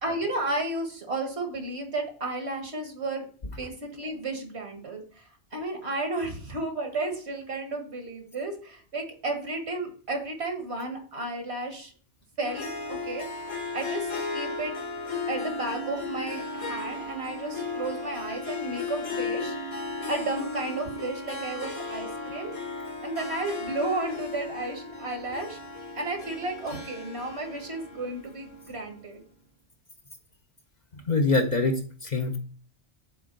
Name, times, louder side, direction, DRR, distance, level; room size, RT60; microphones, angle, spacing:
voice 1, 0.0-3.3 3.6-5.0 5.5-11.9 12.4-13.5 13.7-14.7 15.3-19.6 20.1-22.5 23.0-25.6 26.0-29.2, right 2 dB, 70° right, 4 dB, 1.9 m, -33 dB
Harp, 12.4-28.9, left 3 dB, 60° left, 1.6 m, -35 dB
voice 2, 31.1-32.4, left 3 dB, 45° left, 4 dB, 0.9 m, -24 dB
7.9 x 3.6 x 5.2 m, 0.43 s
omnidirectional pair, 1.2 m